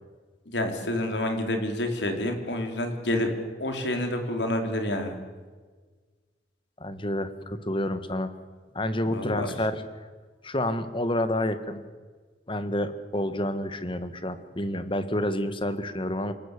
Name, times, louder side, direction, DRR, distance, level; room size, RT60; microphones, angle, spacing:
voice 1, 0.5-5.2 9.1-9.5, left 1 dB, 85° left, 5 dB, 4.1 m, -28 dB
voice 2, 6.8-8.3 8.8-9.8 10.4-11.8 12.5-16.3, left 1 dB, 30° left, 11 dB, 1.8 m, -29 dB
28.0 x 19.0 x 8.4 m, 1.4 s
head